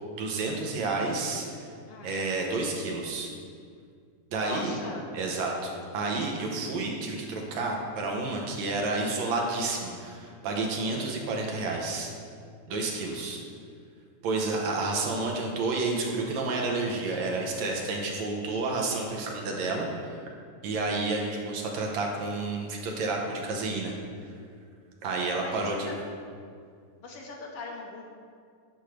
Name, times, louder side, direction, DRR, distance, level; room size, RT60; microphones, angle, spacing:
voice 1, 0.2-1.7 2.0-3.3 4.3-4.7 5.1-12.1 12.7-13.4 14.2-20.2 20.6-24.0 25.0-25.9, right 3 dB, 70° right, 0 dB, 2.2 m, -30 dB
voice 2, 1.9-2.2 4.4-5.1 25.4-25.9 27.0-28.0, left 3 dB, 70° left, 0 dB, 1.5 m, -40 dB
10.5 x 4.4 x 6.4 m, 2.2 s
omnidirectional pair, 3.5 m